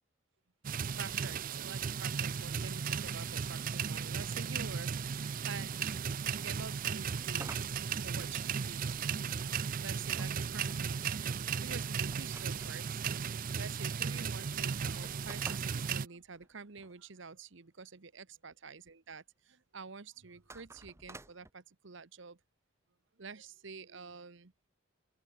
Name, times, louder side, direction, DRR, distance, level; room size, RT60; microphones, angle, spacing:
sound 1, 0.6-16.1, right 6 dB, 40° right, 0.5 m, -36 dB
voice 1, 1.0-5.9 6.3-9.0 9.6-11.0 11.6-22.4 23.2-24.5, right 5 dB, 60° right, 1.0 m, -48 dB
sound 2, 7.3-8.9 10.2-13.0 13.7-13.8 14.0-14.1 14.8-17.0 20.4-21.5, right 2 dB, 15° right, 1.3 m, -52 dB
head